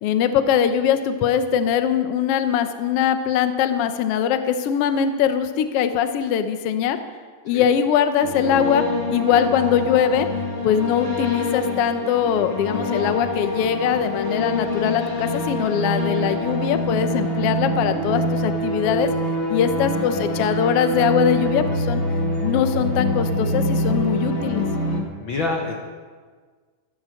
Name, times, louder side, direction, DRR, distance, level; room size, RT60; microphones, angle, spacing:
voice 1, 0.0-7.0 7.4-8.8 9.1-10.3 10.6-19.1 19.5-22.0 22.4-24.6, left 8 dB, 85° left, 9 dB, 1.3 m, -21 dB
sound 1, 8.2-25.0, left 1 dB, 35° left, 1.1 m, -25 dB
voice 2, 25.2-25.7, left 3 dB, 65° left, 1 dB, 1.2 m, -25 dB
14.5 x 10.5 x 6.4 m, 1.5 s
omnidirectional pair, 3.9 m